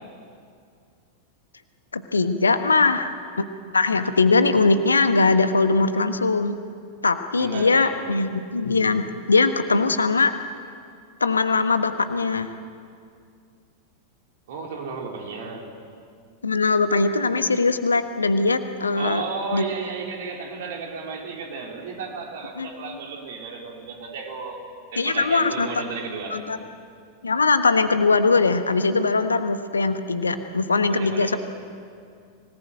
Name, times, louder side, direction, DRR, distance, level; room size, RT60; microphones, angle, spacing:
voice 1, 1.9-3.1 3.7-6.6 7.0-10.3 11.2-12.5 16.4-19.2 19.5-19.6 22.6-23.0 25.0-25.8 26.3-26.6 27.2-31.4, left 3 dB, 75° left, 10 dB, 1.2 m, -21 dB
voice 2, 7.4-8.0 14.5-15.7 19.0-24.6 24.9-26.4 30.9-31.4, right 5 dB, 55° right, 1 dB, 3.9 m, -33 dB
25.0 x 19.0 x 9.3 m, 2.3 s
figure-of-eight pair, 90°, 0 cm